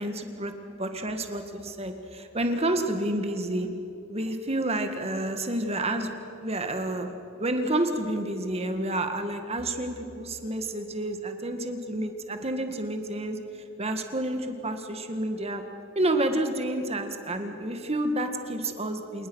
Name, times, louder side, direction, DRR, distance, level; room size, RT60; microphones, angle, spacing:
voice 1, 0.0-0.5 0.8-3.7 4.1-6.1 6.4-7.1 7.4-13.4 13.8-15.6 16.0-19.3, right 1 dB, 30° right, 6 dB, 1.9 m, -29 dB
28.5 x 19.5 x 6.4 m, 2.7 s
head